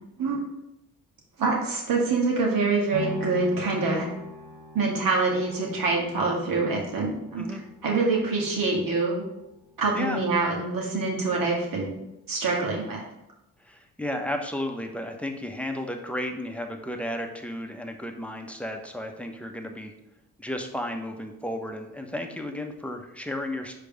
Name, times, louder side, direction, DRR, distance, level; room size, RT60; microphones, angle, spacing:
voice 1, 1.4-4.1 4.7-9.2 9.8-11.9 12.3-13.0, right 3 dB, 60° right, -2 dB, 2.2 m, -25 dB
sound 1, 2.9-11.0 11.5-11.6, right 1 dB, 80° right, 1.4 m, -43 dB
voice 2, 13.6-19.9 20.4-23.7, left 1 dB, 5° left, 3 dB, 1.1 m, -33 dB
5.2 x 4.8 x 5.1 m, 0.89 s
hypercardioid pair, 50°, 39 cm